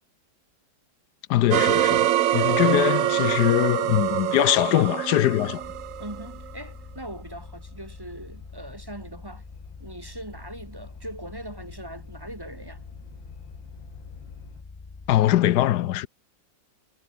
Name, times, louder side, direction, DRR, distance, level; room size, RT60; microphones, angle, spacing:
voice 1, 1.3-5.6 15.1-16.1, left 14 dB, 70° left, 1.1 m, -22 dB
sound 1, 1.5-6.5, right 12 dB, 70° right, 0.8 m, -24 dB
sound 2, 4.4-14.6, left 7 dB, 85° left, 2.8 m, -53 dB
sound 3, 5.6-15.2, left 4 dB, 30° left, 0.5 m, -44 dB
voice 2, 6.0-9.4 9.8-12.8, right 1 dB, 10° right, 1.8 m, -40 dB
omnidirectional pair, 2.0 m